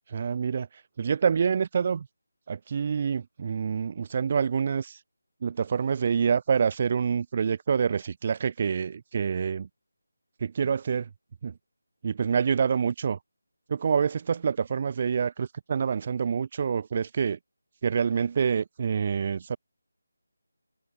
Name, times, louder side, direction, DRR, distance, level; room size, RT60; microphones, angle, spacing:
voice 1, 0.1-0.7 1.0-2.1 2.5-5.0 5.4-9.7 10.4-11.1 11.4-11.5 12.0-13.2 13.7-17.4 17.8-19.6, right 6 dB, 35° right, 0.4 m, -26 dB
figure-of-eight pair, 160°, 0 cm